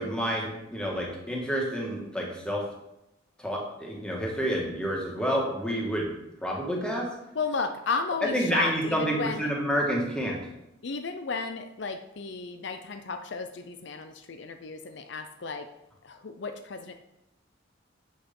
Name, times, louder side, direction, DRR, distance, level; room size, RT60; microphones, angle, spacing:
voice 1, 0.0-2.6 3.4-6.1 6.4-7.1 8.3-10.4, equal, 5° left, -2 dB, 1.8 m, -29 dB
voice 2, 7.3-9.5 10.8-15.7 16.0-16.9, left 4 dB, 60° left, 7 dB, 0.6 m, -33 dB
7.9 x 6.4 x 5.4 m, 0.88 s
head